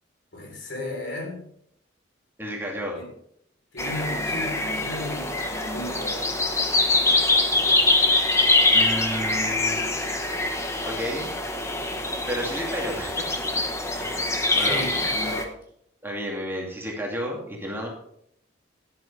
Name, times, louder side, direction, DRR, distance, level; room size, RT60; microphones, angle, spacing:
voice 1, 0.3-1.4 2.9-3.1 3.7-6.2 14.7-15.5, left 1 dB, 70° left, 2 dB, 3.9 m, -34 dB
voice 2, 2.4-3.0 8.7-9.9 10.8-11.3 12.3-13.6 14.0-14.8 16.0-17.9, equal, 10° right, -1 dB, 2.4 m, -32 dB
sound 1, 3.8-15.4, left 2 dB, 15° left, 1.1 m, -24 dB
13.0 x 11.0 x 3.4 m, 0.71 s
head